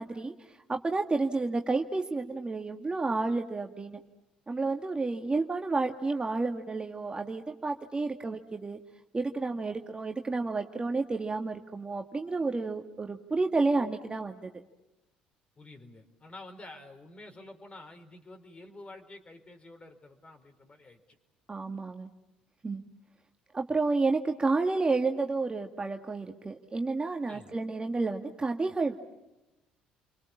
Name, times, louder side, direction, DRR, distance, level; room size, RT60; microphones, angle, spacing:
voice 1, 0.0-4.0 4.5-8.8 9.1-14.5 21.5-22.1 22.6-22.8 23.5-28.9, right 3 dB, 25° right, 4 dB, 1.9 m, -30 dB
voice 2, 15.6-21.0 27.3-27.6, left 2 dB, 30° left, 5 dB, 4.6 m, -49 dB
30.0 x 24.5 x 7.3 m, 0.95 s
hypercardioid pair, 60°, 4 cm